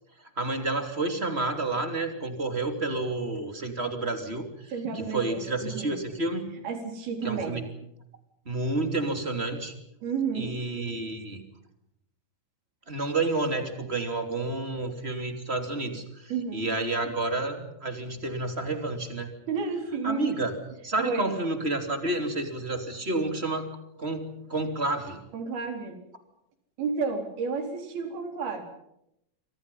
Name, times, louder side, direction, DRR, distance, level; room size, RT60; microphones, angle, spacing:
voice 1, 0.4-4.7 5.1-6.5 7.2-7.6 8.4-9.7 10.3-11.4 12.9-19.3 20.0-20.5 20.8-23.7 24.0-25.2, right 2 dB, 20° right, 6 dB, 2.9 m, -30 dB
voice 2, 4.7-6.0 6.6-7.6 10.0-10.5 16.3-16.7 19.5-20.3 21.0-21.3 25.3-26.0 26.8-28.7, right 5 dB, 80° right, 5 dB, 5.8 m, -31 dB
29.0 x 25.0 x 5.6 m, 0.80 s
omnidirectional pair, 4.3 m